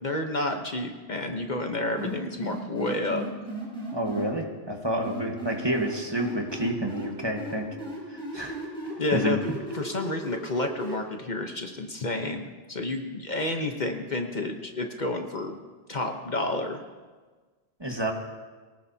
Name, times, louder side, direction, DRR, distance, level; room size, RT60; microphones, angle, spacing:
voice 1, 0.0-3.3 9.0-9.4 9.7-15.6 15.9-16.8, left 2 dB, 45° left, 4 dB, 1.1 m, -30 dB
sound 1, 2.0-4.2 5.0-7.1 7.4-10.9, right 1 dB, 5° left, 6.4 m, -35 dB
voice 2, 3.9-7.7 8.1-8.6 8.8-9.4 17.8-18.1, right 1 dB, 25° right, 1 dB, 1.5 m, -29 dB
23.0 x 18.0 x 2.8 m, 1.4 s
omnidirectional pair, 1.1 m